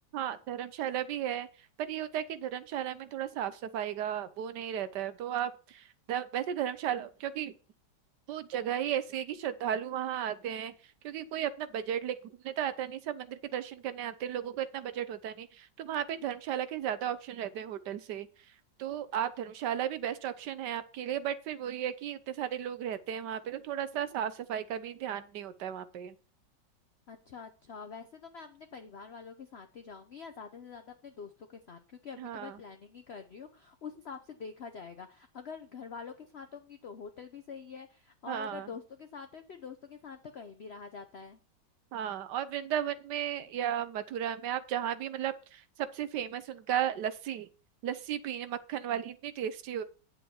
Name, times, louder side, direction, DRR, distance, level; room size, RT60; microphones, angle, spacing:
voice 1, 0.1-1.5 1.8-7.5 8.3-10.7 11.0-12.2 12.4-18.3 18.8-26.1 32.2-32.6 38.3-38.7 41.9-47.5 47.8-49.8, right 10 dB, 75° right, 13 dB, 1.3 m, -34 dB
voice 2, 27.1-41.4, left 5 dB, 50° left, 7 dB, 0.8 m, -46 dB
9.5 x 7.8 x 4.4 m, 0.36 s
omnidirectional pair, 1.9 m